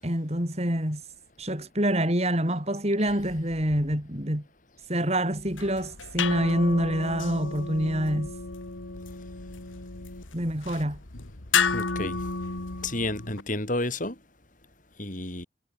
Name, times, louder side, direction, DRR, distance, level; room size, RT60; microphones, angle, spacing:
voice 1, 0.0-1.0 1.4-4.4 4.9-8.3 10.3-11.0, right 1 dB, 35° right, 7.0 m, -26 dB
sound 1, 5.4-13.4, left 5 dB, 85° left, 2.1 m, -32 dB
voice 2, 11.7-12.2 12.8-14.2 15.0-15.5, left 2 dB, 40° left, 7.2 m, -30 dB
head